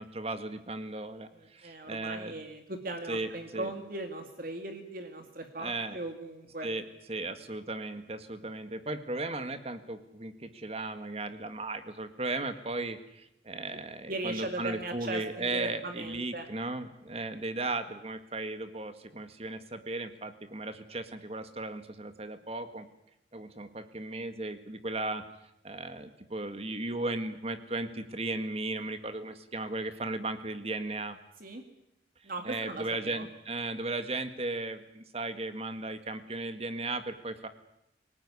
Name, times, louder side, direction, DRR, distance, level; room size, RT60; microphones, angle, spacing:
voice 1, 0.0-2.3 3.1-3.7 5.6-6.0 6.6-22.9 23.3-25.2 25.6-31.2 32.4-37.5, right 2 dB, 35° right, 9 dB, 1.8 m, -36 dB
voice 2, 1.3-6.7 14.1-16.5 31.4-31.6 32.2-33.2, right 2 dB, 50° right, 5 dB, 2.3 m, -38 dB
25.0 x 18.5 x 9.9 m, 0.83 s
head